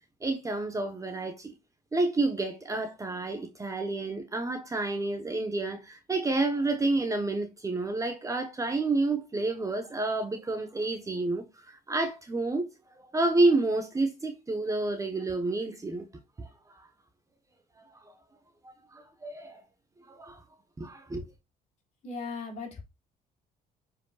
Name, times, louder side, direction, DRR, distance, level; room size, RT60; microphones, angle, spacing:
voice 1, 0.2-1.5 1.9-12.7 13.1-16.1 16.7-16.9 18.6-19.6 20.1-20.4 20.8-21.3, right 2 dB, 20° right, 1.2 m, -29 dB
voice 2, 22.0-22.8, left 4 dB, 45° left, 3.5 m, -37 dB
8.0 x 5.1 x 2.4 m
cardioid pair, 110°, 17 cm